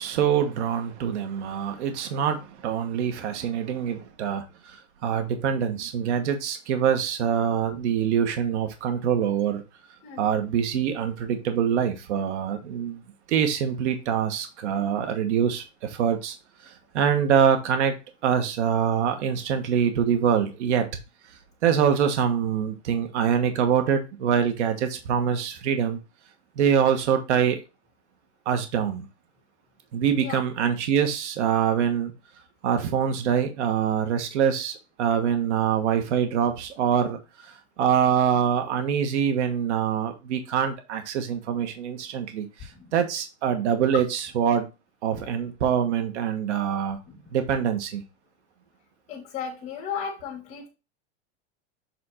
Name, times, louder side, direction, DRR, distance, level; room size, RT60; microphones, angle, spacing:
voice 1, 0.0-9.6 10.2-13.0 13.3-16.3 16.6-18.0 18.2-20.9 21.6-26.0 26.6-27.6 28.4-29.1 29.9-32.1 32.6-44.7 45.0-47.0 47.3-48.0, right 8 dB, 75° right, 1.4 m, -24 dB
voice 2, 49.1-50.7, left 7 dB, 20° left, 2.3 m, -35 dB
7.5 x 3.4 x 4.2 m
supercardioid pair, 175°, 35 cm